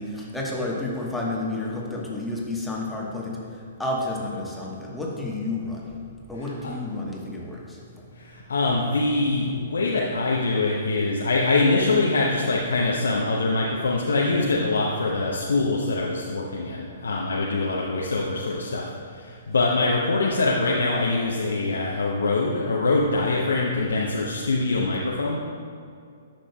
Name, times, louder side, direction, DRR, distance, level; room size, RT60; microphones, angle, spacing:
voice 1, 0.0-3.4 3.8-5.8 6.3-7.6, left 2 dB, 5° left, -3 dB, 1.2 m, -30 dB
voice 2, 8.2-18.8 19.1-25.4, left 3 dB, 75° left, -3 dB, 0.7 m, -24 dB
10.0 x 6.5 x 2.3 m, 2.3 s
figure-of-eight pair, 120°, 0 cm